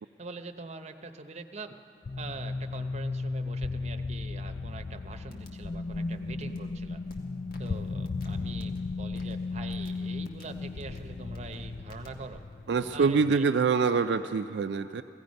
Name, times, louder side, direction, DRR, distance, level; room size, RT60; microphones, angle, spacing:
voice 1, 0.2-1.7 2.2-7.0 7.6-12.4 12.9-13.5, right 3 dB, 40° right, 6 dB, 0.7 m, -43 dB
sound 1, 2.0-13.4, left 3 dB, 40° left, 0.4 m, -35 dB
sound 2, 5.1-12.6, equal, 55° left, 1.6 m, -51 dB
voice 2, 12.7-15.0, right 5 dB, 75° right, 7 dB, 0.4 m, -25 dB
16.5 x 16.0 x 5.3 m, 2.4 s
head